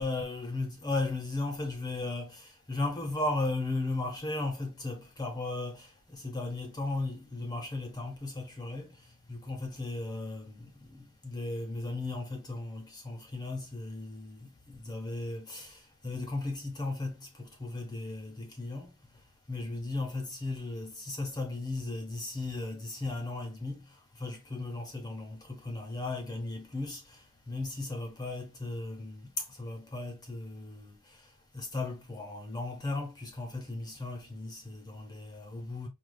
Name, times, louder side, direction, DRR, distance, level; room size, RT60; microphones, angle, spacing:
voice 1, 0.0-18.9 19.5-35.9, left 2 dB, 20° left, 0.7 m, -36 dB
4.8 x 2.3 x 2.2 m
head